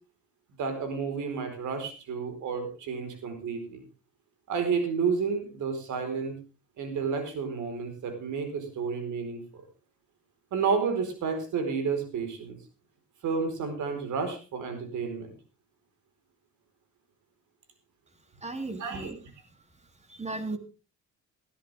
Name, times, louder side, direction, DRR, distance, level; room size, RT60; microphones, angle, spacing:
voice 1, 0.6-3.8 4.5-6.4 6.8-9.4 10.5-12.6 13.2-15.3 18.8-19.1, right 5 dB, 75° right, 7 dB, 4.6 m, -31 dB
voice 2, 18.4-19.2 20.1-20.6, right 2 dB, 20° right, 7 dB, 3.0 m, -35 dB
17.5 x 13.0 x 3.5 m, 0.32 s
cardioid pair, 90°, 30 cm